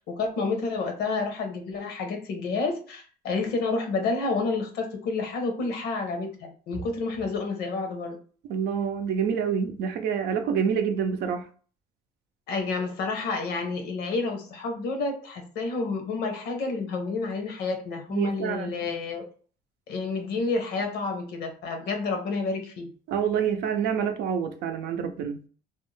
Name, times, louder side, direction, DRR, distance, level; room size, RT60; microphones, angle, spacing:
voice 1, 0.0-8.2 12.5-19.2 19.9-22.9, left 3 dB, 75° left, 0.8 m, -29 dB
voice 2, 8.5-11.4 18.1-18.7 23.1-25.4, right 7 dB, 75° right, 0.5 m, -27 dB
2.5 x 2.1 x 3.1 m
cardioid pair, 110°, 17 cm